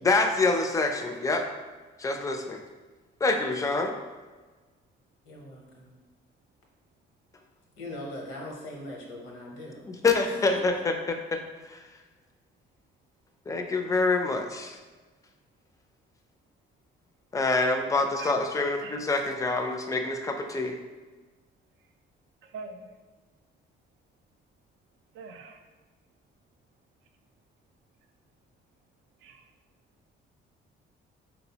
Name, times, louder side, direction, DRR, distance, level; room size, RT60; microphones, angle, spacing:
voice 1, 0.0-1.5 2.0-2.6 3.2-3.9 9.9-11.4 11.7-11.8 13.5-14.8 17.3-20.7, left 3 dB, 15° left, 4 dB, 0.4 m, -26 dB
voice 2, 5.3-6.0 7.8-9.9 10.2-10.3, left 1 dB, 90° left, -1 dB, 0.8 m, -40 dB
voice 3, 22.4-22.9 25.1-25.6 29.2-29.4, right 4 dB, 80° right, 5 dB, 0.4 m, -42 dB
4.0 x 2.0 x 2.8 m, 1.3 s
cardioid pair, 90°, 20 cm